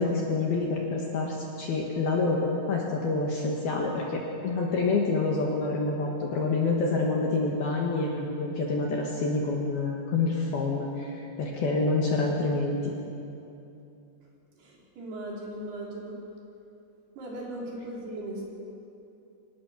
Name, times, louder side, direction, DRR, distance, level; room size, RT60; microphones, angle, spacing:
voice 1, 0.0-12.9, left 3 dB, 60° left, -1 dB, 3.0 m, -27 dB
voice 2, 14.6-16.2 17.2-18.4, right 1 dB, 55° right, -3 dB, 5.1 m, -38 dB
25.0 x 18.5 x 6.3 m, 2.7 s
omnidirectional pair, 6.0 m